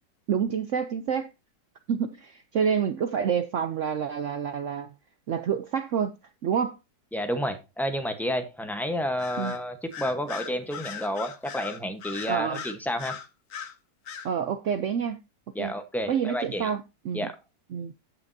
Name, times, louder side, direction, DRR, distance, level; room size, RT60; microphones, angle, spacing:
voice 1, 0.3-1.3 1.9-4.9 5.3-6.1 6.4-6.8 9.4-9.5 12.3-12.6 14.2-15.2 15.6-15.7 16.1-17.3 17.7-17.9, right 7 dB, 75° right, 0.7 m, -28 dB
voice 2, 7.1-13.2 15.5-16.7 17.1-17.4, equal, ahead, 0.4 m, -30 dB
Bird vocalization bird call bird song, 9.2-9.6 9.9-13.7 14.1-14.3, left 8 dB, 55° left, 1.2 m, -38 dB
15.5 x 5.9 x 2.6 m
omnidirectional pair, 1.9 m